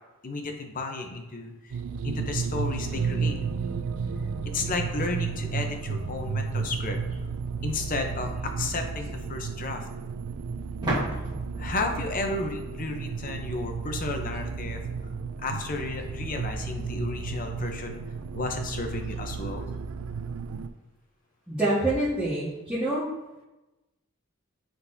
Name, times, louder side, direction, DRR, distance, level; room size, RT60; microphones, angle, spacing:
voice 1, 0.2-1.8 2.0-3.4 4.5-7.0 7.6-9.9 11.6-14.8 15.4-18.0 18.3-19.7, left 3 dB, 40° left, 4 dB, 0.7 m, -33 dB
sound 1, 1.7-20.7, right 5 dB, 70° right, 0.4 m, -33 dB
Musical instrument, 2.9-10.8 11.1-11.3, right 1 dB, 45° right, 2.0 m, -46 dB
sound 2, 10.8-13.5, right 1 dB, 20° right, 1.7 m, -34 dB
voice 2, 21.5-23.0, right 1 dB, 5° right, -14 dB, 1.6 m, -26 dB
10.5 x 3.9 x 2.7 m, 1.0 s
head